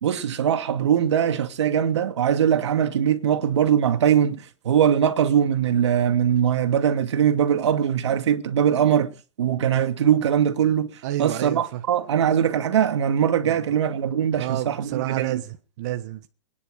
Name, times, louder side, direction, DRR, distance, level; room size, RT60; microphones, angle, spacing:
voice 1, 0.0-9.1 9.4-10.9 11.2-15.4, right 9 dB, 75° right, 2.3 m, -21 dB
voice 2, 11.0-11.8 13.4-13.8 14.4-16.3, right 15 dB, 40° right, 1.3 m, -30 dB
24.0 x 10.5 x 5.0 m
hypercardioid pair, 170°, 15 cm